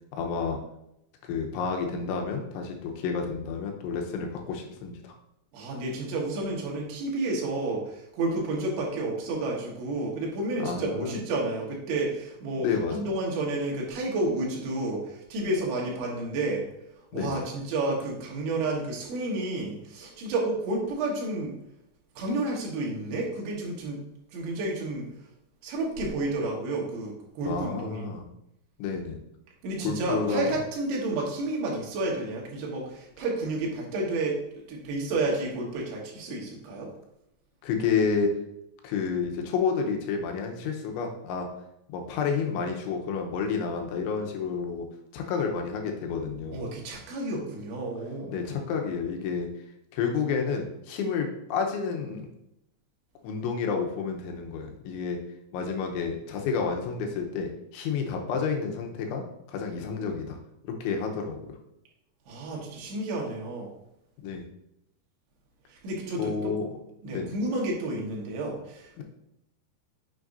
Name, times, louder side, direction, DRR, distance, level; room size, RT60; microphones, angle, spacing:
voice 1, 0.1-0.6 1.2-5.1 10.6-11.2 12.6-13.0 17.1-17.4 27.4-28.3 28.8-29.2 29.8-30.5 37.6-38.3 38.8-41.5 41.9-44.9 45.1-46.6 48.3-49.5 49.9-52.3 53.2-55.2 55.5-60.4 60.6-61.5 64.2-64.4 66.2-66.6 67.1-67.3 69.0-69.1, left 5 dB, 85° left, 2 dB, 3.3 m, -30 dB
voice 2, 5.5-12.7 12.9-16.7 17.1-21.5 22.2-24.0 24.3-25.1 25.6-28.1 29.6-34.4 34.7-36.9 46.5-48.3 62.3-63.7 65.7-66.5 67.0-69.0, right 2 dB, 75° right, -2 dB, 3.7 m, -30 dB
9.0 x 6.3 x 2.6 m, 0.82 s
omnidirectional pair, 5.3 m